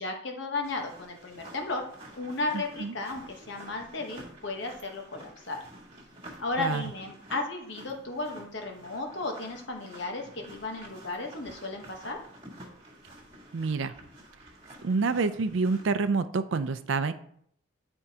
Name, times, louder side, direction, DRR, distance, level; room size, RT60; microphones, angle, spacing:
voice 1, 0.0-1.9 2.1-5.6 6.4-12.2, left 2 dB, 60° left, 3 dB, 1.1 m, -34 dB
sound 1, 0.6-16.1, right 1 dB, 25° right, 1.8 m, -50 dB
voice 2, 2.5-2.9 6.6-6.8 13.5-13.9 14.8-17.1, right 4 dB, 65° right, 11 dB, 0.5 m, -27 dB
11.0 x 4.5 x 2.8 m, 0.66 s
head